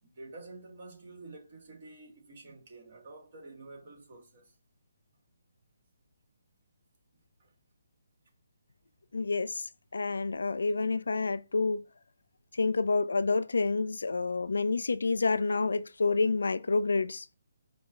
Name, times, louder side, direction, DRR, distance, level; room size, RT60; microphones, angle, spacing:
voice 1, 0.0-4.6 7.4-7.5, right 2 dB, 50° right, 1.9 m, -49 dB
voice 2, 9.1-11.8 12.5-17.3, left 3 dB, 75° left, 0.4 m, -28 dB
5.2 x 2.3 x 4.0 m
figure-of-eight pair, 150°, 0 cm